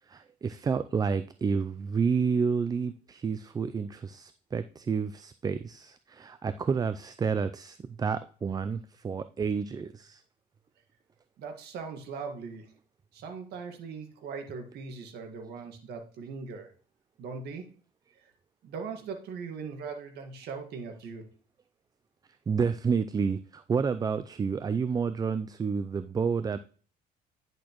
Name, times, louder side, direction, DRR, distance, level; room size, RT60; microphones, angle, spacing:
voice 1, 0.1-10.2 22.5-26.6, right 5 dB, 20° right, 12 dB, 0.4 m, -30 dB
voice 2, 11.4-12.7 13.1-16.7 17.2-17.7 18.2-18.3 18.6-21.2, right 5 dB, 75° right, 4 dB, 1.7 m, -40 dB
10.0 x 6.5 x 3.0 m, 0.41 s
cardioid pair, 110°, 17 cm